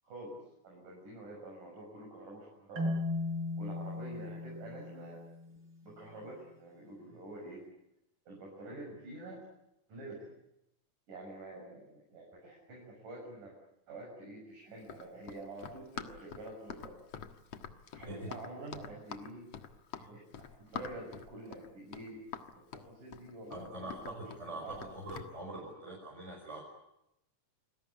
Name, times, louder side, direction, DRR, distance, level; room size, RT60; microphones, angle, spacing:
voice 1, 0.0-0.4 0.6-3.0 3.6-5.2 5.8-7.6 8.3-9.4 9.9-10.3 11.1-13.5 13.9-16.9 17.9-19.5 19.9-22.2 22.6-24.2 24.4-24.9, right 2 dB, 80° right, -2 dB, 8.1 m, -47 dB
Marimba xylophone, 2.8-5.7, left 2 dB, 40° right, 5.7 m, -37 dB
Run, 14.8-25.3, left 8 dB, 55° left, 2.5 m, -46 dB
voice 2, 23.5-26.6, right 1 dB, 20° right, -2 dB, 6.0 m, -43 dB
28.5 x 20.5 x 9.8 m, 0.86 s
omnidirectional pair, 3.6 m